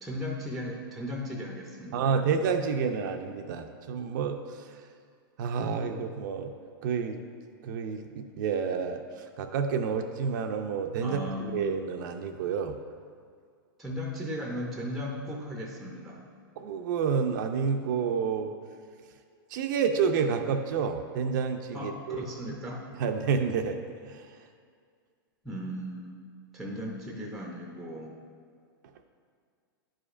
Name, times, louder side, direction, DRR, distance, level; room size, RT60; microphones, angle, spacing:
voice 1, 0.0-2.2 11.0-11.5 13.8-16.3 21.7-22.9 25.4-26.2 26.5-28.2, equal, ahead, -1 dB, 0.5 m, -36 dB
voice 2, 1.9-4.4 5.4-6.5 6.8-7.2 7.6-9.0 9.4-12.8 16.6-18.5 19.5-22.3 23.0-24.3, right 6 dB, 55° right, 6 dB, 0.4 m, -29 dB
10.5 x 4.9 x 2.5 m, 2.1 s
supercardioid pair, 145°, 12 cm